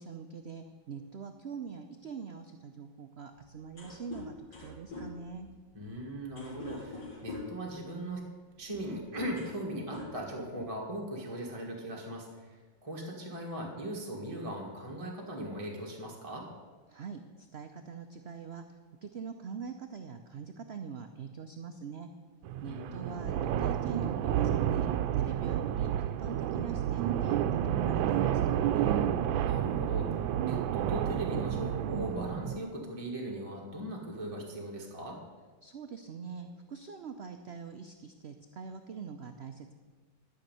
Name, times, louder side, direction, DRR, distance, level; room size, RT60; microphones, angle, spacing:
voice 1, 0.0-5.5 16.9-22.1 22.6-25.9 26.2-29.0 35.6-39.7, right 6 dB, 65° right, 6 dB, 0.6 m, -43 dB
sound 1, 3.4-3.5 3.6-7.7 8.7-8.8 9.2-9.7 9.9-10.8, left 2 dB, 55° left, 4.2 m, -44 dB
voice 2, 5.7-8.2 8.6-16.5 22.6-23.2 29.4-35.2, right 1 dB, 20° right, -2 dB, 1.7 m, -39 dB
sound 2, 22.4-32.6, right 10 dB, 85° right, 1.4 m, -30 dB
12.5 x 6.4 x 9.1 m, 1.4 s
omnidirectional pair, 2.1 m